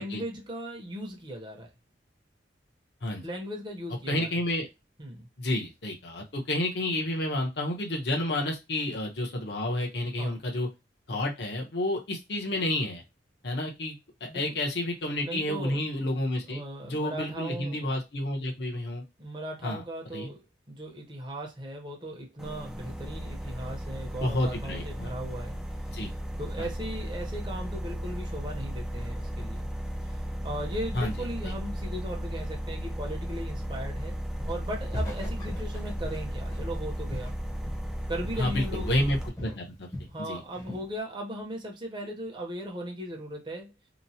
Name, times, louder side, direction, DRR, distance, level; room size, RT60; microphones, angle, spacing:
voice 1, 0.0-1.7 3.2-4.3 5.0-5.3 10.2-10.4 14.2-14.6 15.2-15.8 16.5-17.9 19.2-20.4 20.7-25.6 26.4-29.7 30.0-30.1 30.4-34.2 34.5-37.3 38.1-38.9 40.1-43.7, equal, 25° right, 0.7 m, -37 dB
voice 2, 4.1-4.7 5.4-10.7 11.1-13.0 13.4-14.0 14.2-16.6 16.9-19.0 19.6-19.8 20.1-20.3 24.2-25.1 25.9-26.1 26.6-26.7 30.9-31.1 31.4-31.5 38.4-39.9 40.3-40.4, left 1 dB, 60° left, 0.9 m, -30 dB
sound 1, 22.4-39.3, equal, 5° right, 0.3 m, -35 dB
Walk footsteps, 34.4-34.7 34.9-38.0 38.2-38.5 38.8-40.2 40.5-40.9, equal, 20° left, 0.7 m, -40 dB
3.0 x 2.1 x 2.7 m
head